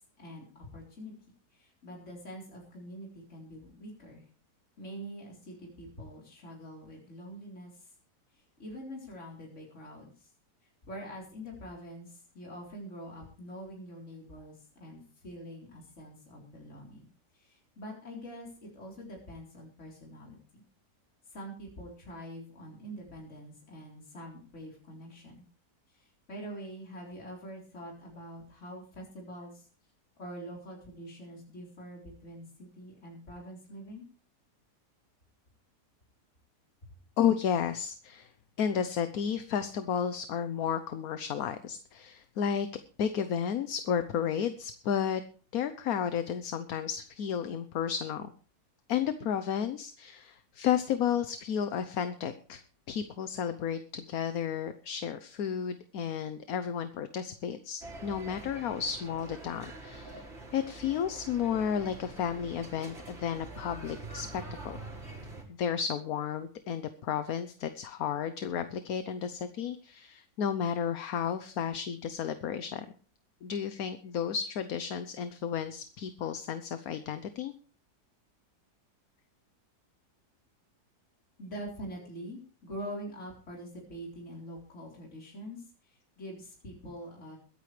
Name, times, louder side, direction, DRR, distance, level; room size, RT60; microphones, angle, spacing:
voice 1, 0.2-1.1 1.5-4.3 4.8-7.9 8.6-10.3 10.8-17.1 17.3-20.6 21.3-25.4 25.9-29.7 30.2-34.1 81.4-87.4, equal, 45° left, -2 dB, 4.3 m, -45 dB
voice 2, 37.2-38.3 38.6-42.7 43.0-45.2 45.5-48.3 48.9-52.6 52.9-60.2 60.5-64.8 65.6-72.9 73.4-77.5, left 8 dB, 65° left, 10 dB, 1.2 m, -32 dB
sound 1, 57.8-65.4, right 2 dB, 40° right, 3.5 m, -45 dB
22.5 x 9.3 x 3.3 m, 0.40 s
omnidirectional pair, 1.7 m